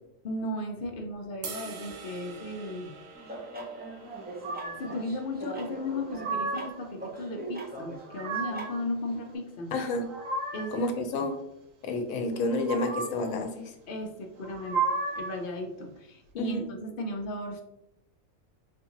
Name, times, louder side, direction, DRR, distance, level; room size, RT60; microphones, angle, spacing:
voice 1, 0.2-2.9 4.8-9.7 10.5-11.3 13.9-17.6, left 1 dB, 55° left, 3 dB, 0.6 m, -36 dB
sound 1, 1.4-7.7, right 5 dB, 60° right, 0.8 m, -47 dB
sound 2, 3.1-9.3, right 2 dB, 10° right, 0.5 m, -41 dB
sound 3, 4.4-5.0 5.8-6.9 7.8-8.8 9.8-10.9 12.4-13.3 14.4-15.4, right 3 dB, 80° right, 1.2 m, -33 dB
voice 2, 9.7-10.0 10.7-11.4 11.8-13.7 16.4-16.7, left 2 dB, 80° left, 5 dB, 1.0 m, -30 dB
4.2 x 2.7 x 2.8 m, 0.83 s
omnidirectional pair, 1.4 m